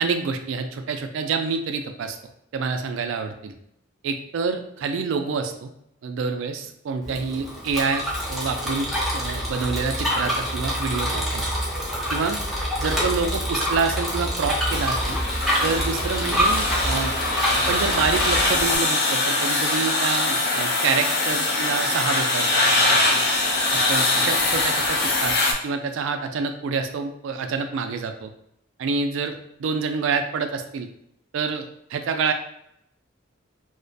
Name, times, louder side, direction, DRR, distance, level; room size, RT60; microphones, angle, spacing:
voice 1, 0.0-2.2 2.5-3.5 4.0-5.7 6.0-8.9 9.1-11.5 12.1-12.4 12.8-15.2 15.6-17.1 17.7-22.5 22.8-23.2 23.7-25.4 25.6-28.3 28.8-30.9 31.3-32.3, right 5 dB, 75° right, 7 dB, 0.3 m, -27 dB
Bicycle, 7.0-18.8, equal, ahead, 0.5 m, -26 dB
sound 1, 14.7-25.5, left 2 dB, 55° left, 0.4 m, -23 dB
2.3 x 2.1 x 2.5 m, 0.76 s
head